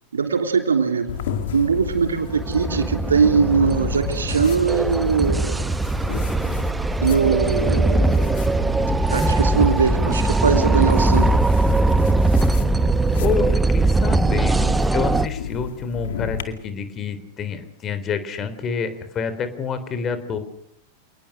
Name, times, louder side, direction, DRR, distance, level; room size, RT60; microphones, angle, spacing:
voice 1, 0.1-1.1 1.5-5.6 7.0-8.3 9.1-11.4, right 5 dB, 70° right, 6 dB, 3.2 m, -21 dB
sound 1, 1.1-16.4, left 8 dB, 55° left, 2.2 m, -32 dB
sound 2, 1.3-15.3, right 2 dB, 10° right, 0.9 m, -20 dB
voice 2, 13.2-20.4, left 6 dB, 25° left, 12 dB, 3.6 m, -28 dB
28.0 x 20.0 x 6.6 m, 0.69 s
figure-of-eight pair, 90°, 0 cm